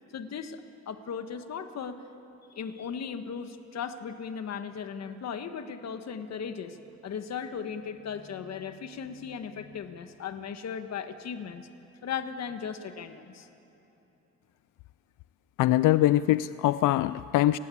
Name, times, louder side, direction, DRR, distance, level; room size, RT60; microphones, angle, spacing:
voice 1, 0.1-2.0 2.5-6.8 7.0-11.7 12.0-13.5, left 7 dB, 60° left, 8 dB, 1.6 m, -37 dB
voice 2, 15.6-17.6, left 15 dB, 85° left, 15 dB, 0.5 m, -23 dB
28.5 x 19.5 x 8.6 m, 2.9 s
cardioid pair, 90°, 30 cm